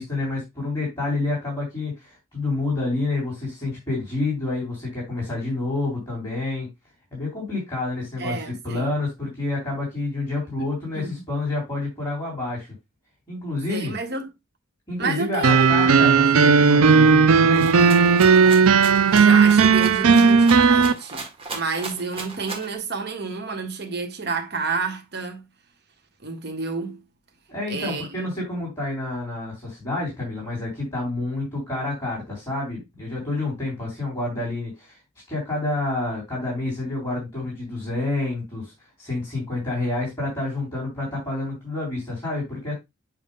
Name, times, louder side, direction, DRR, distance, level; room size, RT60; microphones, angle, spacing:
voice 1, 0.0-6.7 7.1-12.7 13.3-14.0 14.9-17.8 27.5-35.0 35.3-38.7 39.0-42.7, left 2 dB, 20° left, 3.2 m, -28 dB
voice 2, 8.2-8.9 10.9-11.2 13.7-14.3 15.0-15.7 18.5-18.7 19.1-25.5 26.2-27.0 27.7-28.3, right 4 dB, 50° right, 1.4 m, -30 dB
sound 1, 15.4-20.9, right 5 dB, 85° right, 0.5 m, -15 dB
Rattle (instrument), 17.5-22.8, right 4 dB, 25° right, 1.5 m, -36 dB
7.6 x 2.6 x 5.3 m
head